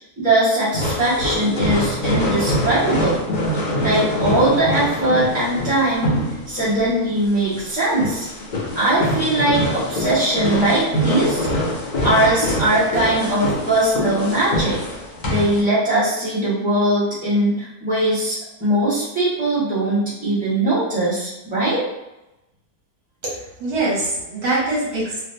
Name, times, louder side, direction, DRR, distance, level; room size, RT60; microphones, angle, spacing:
voice 1, 0.2-3.2 3.8-6.2 6.5-8.3 8.7-11.5 12.0-14.8 15.2-21.8, right 1 dB, 5° right, -10 dB, 1.0 m, -20 dB
sound 1, 0.7-15.6, left 1 dB, 65° left, 0.4 m, -24 dB
voice 2, 23.2-25.2, right 2 dB, 80° right, -6 dB, 1.6 m, -23 dB
3.4 x 2.2 x 2.6 m, 0.95 s
omnidirectional pair, 1.7 m